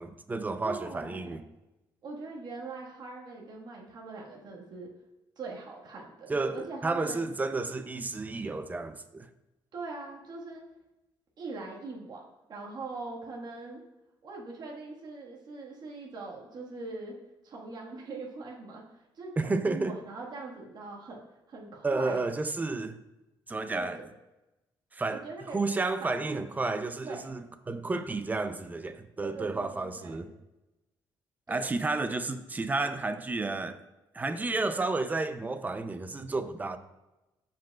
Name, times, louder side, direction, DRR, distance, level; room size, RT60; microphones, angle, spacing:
voice 1, 0.0-1.4 6.3-9.3 19.4-20.0 21.8-23.0 23.5-24.0 24.9-25.2 25.5-30.3 31.5-33.8 34.1-36.8, right 3 dB, 20° right, 0.5 m, -31 dB
voice 2, 0.6-1.4 2.0-4.9 5.4-7.2 9.7-10.6 11.4-12.2 12.5-13.8 14.2-17.1 17.4-18.8 19.1-21.2 21.5-22.2 23.7-23.9 25.1-25.6 26.0-26.4 27.0-27.3 29.2-30.3 31.5-31.8, right 3 dB, 55° right, 1.6 m, -42 dB
13.5 x 4.9 x 2.4 m
cardioid pair, 110°, 9 cm